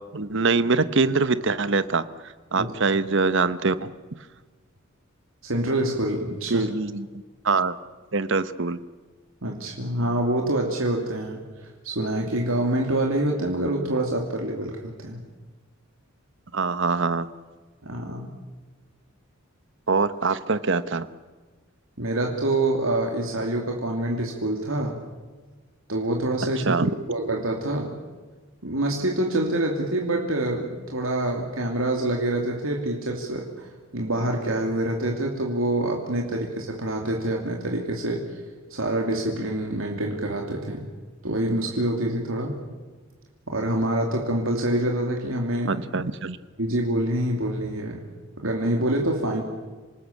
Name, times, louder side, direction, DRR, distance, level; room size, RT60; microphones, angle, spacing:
voice 1, 0.1-3.9 6.5-7.1 7.4-7.8 8.1-8.8 16.5-17.3 19.9-21.1 26.6-26.9 45.7-46.4, right 4 dB, 60° right, 14 dB, 1.0 m, -24 dB
voice 2, 5.4-6.7 9.4-15.2 17.8-18.3 22.0-25.0 25.9-26.6 27.1-28.0 28.6-38.2 38.7-40.9 41.2-42.6 43.5-45.8 46.6-48.0 48.4-49.4, right 1 dB, 80° right, 1 dB, 2.7 m, -26 dB
27.5 x 18.5 x 8.5 m, 1.3 s
head